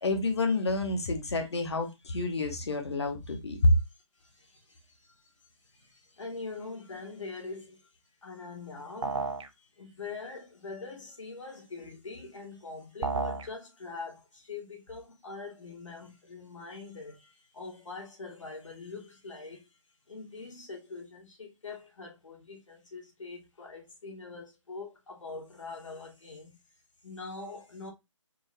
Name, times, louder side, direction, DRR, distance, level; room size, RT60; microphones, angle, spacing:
voice 1, 0.0-3.7, left 2 dB, 60° left, 1.1 m, -28 dB
voice 2, 4.2-5.3 5.6-7.9 8.2-9.3 9.6-19.7 20.1-26.6 27.0-27.9, left 4 dB, 75° left, 2.0 m, -43 dB
sound 1, 9.0-9.5 13.0-13.5, right 3 dB, 75° right, 0.7 m, -31 dB
4.5 x 3.2 x 2.7 m
hypercardioid pair, 175°, 16 cm